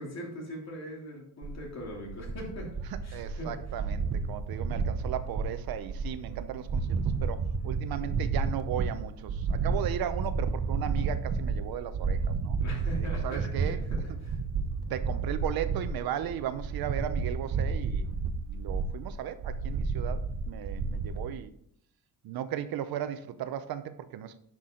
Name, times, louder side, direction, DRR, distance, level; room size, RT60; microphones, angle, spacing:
voice 1, 0.0-2.7 3.0-3.5 12.6-14.4, equal, 45° left, -1 dB, 3.2 m, -41 dB
sound 1, 1.4-21.3, right 4 dB, 45° right, 0.9 m, -31 dB
voice 2, 3.1-12.6 12.9-13.9 14.9-18.1 18.5-21.5 22.2-24.4, right 10 dB, 80° right, 12 dB, 0.8 m, -36 dB
10.0 x 6.2 x 3.8 m, 0.68 s
cardioid pair, 155°, 35 cm